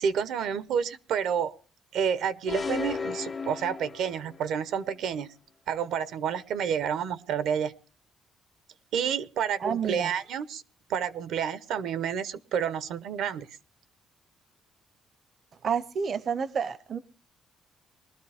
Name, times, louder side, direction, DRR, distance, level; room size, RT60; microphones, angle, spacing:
voice 1, 0.0-1.5 1.9-5.3 5.7-7.7 8.9-10.6 10.9-13.5, right 7 dB, 80° right, 15 dB, 0.7 m, -29 dB
sound 1, 2.5-4.5, left 4 dB, 25° left, 0.6 m, -34 dB
voice 2, 9.6-10.1 15.6-17.0, right 6 dB, 45° right, 16 dB, 0.6 m, -29 dB
21.5 x 12.5 x 3.4 m, 0.38 s
cardioid pair, 125°, 0 cm